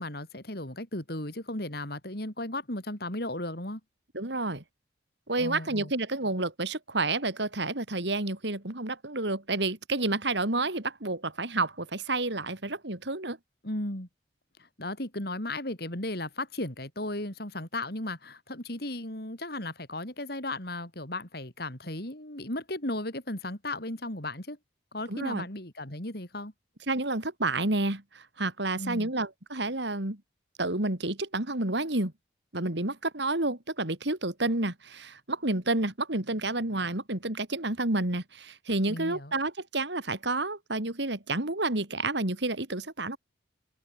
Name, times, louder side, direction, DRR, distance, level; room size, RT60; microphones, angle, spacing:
voice 1, 0.0-3.8 5.4-5.9 13.6-14.1 14.6-24.6 24.9-26.5 28.8-29.1 38.9-39.3, left 1 dB, 55° left, 4.4 m, -35 dB
voice 2, 4.1-4.6 5.3-13.4 25.1-25.5 26.9-30.2 30.6-32.1 32.5-43.2, right 2 dB, 65° right, 3.0 m, -30 dB
open air
head